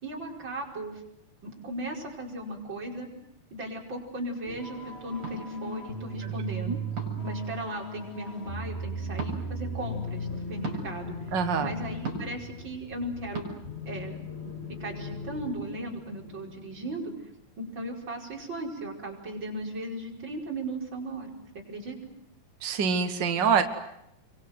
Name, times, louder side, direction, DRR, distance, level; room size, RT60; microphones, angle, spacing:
voice 1, 0.0-0.9 1.4-3.1 3.5-6.8 7.2-11.1 11.6-13.5 13.9-14.2 14.8-17.1 17.6-21.4 21.7-22.0, right 1 dB, 30° right, -1 dB, 5.8 m, -37 dB
sound 1, 4.5-17.0, equal, 25° left, 1.3 m, -37 dB
sound 2, 5.2-5.4 7.0-7.3 9.1-9.4 10.6-10.8 12.0-12.4 13.3-13.5, right 4 dB, 50° right, 7.3 m, -34 dB
voice 2, 11.3-11.7 22.6-23.6, right 6 dB, 65° right, 6 dB, 1.1 m, -25 dB
29.5 x 24.0 x 8.1 m, 0.80 s
omnidirectional pair, 4.6 m